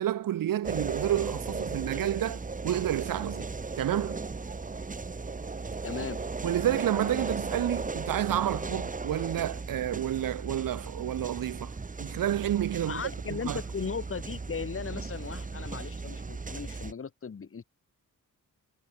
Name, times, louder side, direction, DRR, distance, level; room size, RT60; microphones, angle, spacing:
voice 1, 0.0-3.5 3.8-4.2 6.4-11.7 12.0-13.0 13.3-13.6, right 12 dB, 85° right, 1.1 m, -30 dB
sound 1, 0.6-16.9, right 4 dB, 25° right, 2.7 m, -36 dB
voice 2, 5.8-6.2 12.9-17.6, left 6 dB, 40° left, 5.3 m, -37 dB
wide cardioid pair, 155°, 33 cm